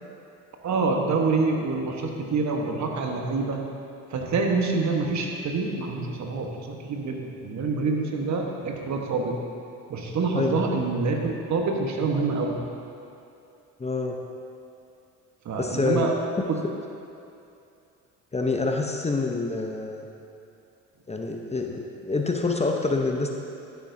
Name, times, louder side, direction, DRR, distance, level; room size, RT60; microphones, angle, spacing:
voice 1, 0.6-3.6 4.1-9.4 9.9-12.6 15.4-16.1 16.5-16.6, right 3 dB, 50° right, 1 dB, 1.3 m, -26 dB
voice 2, 13.8-14.2 15.6-16.1 18.3-20.1 21.1-23.3, left 3 dB, 20° left, 2 dB, 0.8 m, -26 dB
13.0 x 7.0 x 2.7 m, 2.7 s
hypercardioid pair, 60°, 35 cm